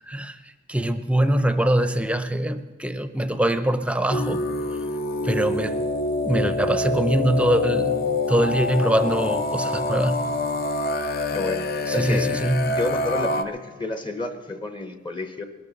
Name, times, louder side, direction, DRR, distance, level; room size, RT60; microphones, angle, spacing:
voice 1, 0.7-4.4 5.2-5.8 6.2-8.0 8.3-10.2 12.0-12.6, right 1 dB, 5° right, 10 dB, 0.6 m, -23 dB
sound 1, 4.1-13.4, left 2 dB, 50° left, 0.7 m, -26 dB
voice 2, 11.3-12.2 12.7-15.4, left 2 dB, 25° left, 7 dB, 0.9 m, -30 dB
21.5 x 12.5 x 4.0 m, 1.2 s
head